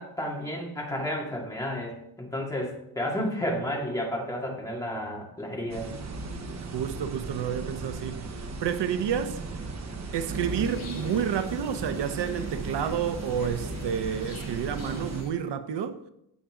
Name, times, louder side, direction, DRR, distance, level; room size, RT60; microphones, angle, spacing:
voice 1, 0.0-5.9, equal, 10° left, 2.2 m, -32 dB
sound 1, 5.7-15.2, right 3 dB, 40° right, 1.1 m, -36 dB
voice 2, 6.7-8.2 8.6-9.4 10.1-16.0, right 8 dB, 85° right, 0.8 m, -30 dB
sound 2, 10.2-15.3, left 3 dB, 65° left, 4.7 m, -47 dB
16.0 x 5.8 x 3.8 m
wide cardioid pair, 175°, 41 cm